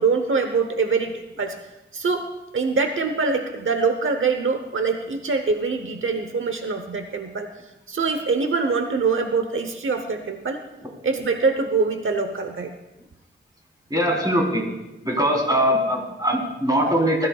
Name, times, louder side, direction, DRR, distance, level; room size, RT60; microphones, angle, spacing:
voice 1, 0.0-1.6 1.9-2.3 2.5-7.5 7.9-10.6 11.0-12.7, right 4 dB, 85° right, 6 dB, 0.9 m, -24 dB
voice 2, 13.9-14.6 15.0-17.3, equal, 20° right, -2 dB, 3.9 m, -21 dB
20.5 x 14.0 x 2.4 m, 1.0 s
wide cardioid pair, 100°, 20 cm